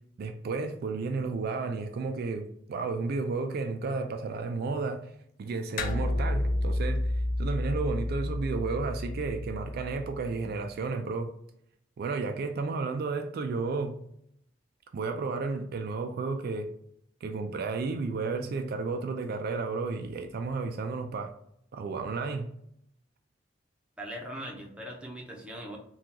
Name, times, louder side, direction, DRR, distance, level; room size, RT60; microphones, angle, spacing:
voice 1, 0.2-5.1 5.4-11.3 12.0-14.0 14.9-16.7 17.2-21.3 21.7-22.5, right 4 dB, 55° right, 6 dB, 0.3 m, -32 dB
sound 1, 5.8-10.5, left 1 dB, 45° left, 0.4 m, -30 dB
voice 2, 24.0-25.8, equal, 5° right, -1 dB, 0.7 m, -40 dB
3.7 x 2.3 x 2.8 m, 0.72 s
head